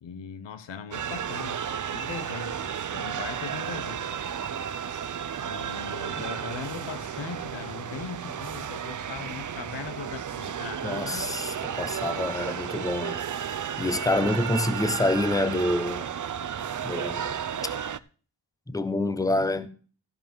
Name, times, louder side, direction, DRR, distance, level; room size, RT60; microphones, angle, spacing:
voice 1, 0.0-4.1 5.4-11.4 19.2-19.7, left 7 dB, 80° left, 1.1 m, -40 dB
sound 1, 0.9-18.0, right 8 dB, 45° right, 0.7 m, -33 dB
voice 2, 10.8-16.1 16.8-17.4 18.7-19.7, left 1 dB, 10° left, 1.0 m, -27 dB
14.0 x 5.0 x 7.6 m
wide cardioid pair, 110°, 42 cm